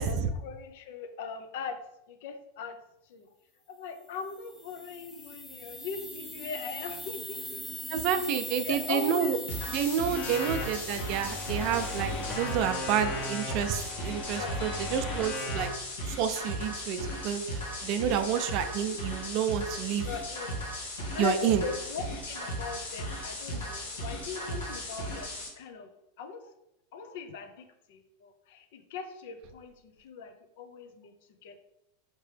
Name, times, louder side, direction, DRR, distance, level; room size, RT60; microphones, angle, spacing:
voice 1, 0.0-1.8 2.1-2.8 3.1-3.3 3.7-7.7 8.6-9.4 9.8-10.1 14.3-14.8 18.1-18.4 20.0-20.5 21.0-25.3 25.6-25.9 26.2-26.4 26.9-31.1 31.4-31.6, left 5 dB, 70° left, 7 dB, 0.6 m, -39 dB
sound 1, 4.2-12.1, left 1 dB, 10° left, 0.6 m, -41 dB
voice 2, 7.9-9.4 9.7-15.7 16.1-20.1 21.2-21.6, right 8 dB, 55° right, 10 dB, 0.4 m, -29 dB
sound 2, 9.5-25.5, equal, 85° left, 1.3 m, -37 dB
sound 3, 10.1-15.7, left 2 dB, 30° left, 0.9 m, -37 dB
4.4 x 2.9 x 3.3 m, 0.82 s
hypercardioid pair, 110°, 0 cm